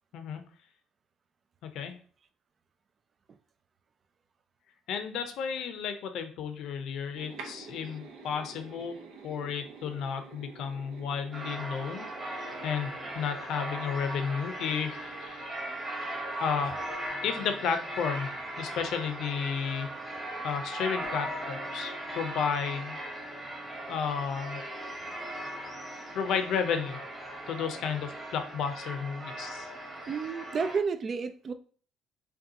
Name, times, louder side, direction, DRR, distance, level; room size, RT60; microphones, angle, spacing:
voice 1, 1.6-2.0 4.9-9.0 9.2-15.5 15.9-16.0 16.4-16.8 17.2-19.9 20.4-23.0 23.9-24.6 26.1-27.0 27.5-29.7, left 7 dB, 65° left, 8 dB, 0.6 m, -33 dB
sound 1, 7.1-15.3, right 4 dB, 85° right, 0.8 m, -49 dB
sound 2, 11.3-30.8, right 1 dB, 20° right, 1.3 m, -38 dB
voice 2, 30.1-31.5, right 5 dB, 35° right, 10 dB, 0.3 m, -32 dB
5.2 x 2.3 x 2.8 m, 0.43 s
cardioid pair, 120°, 0 cm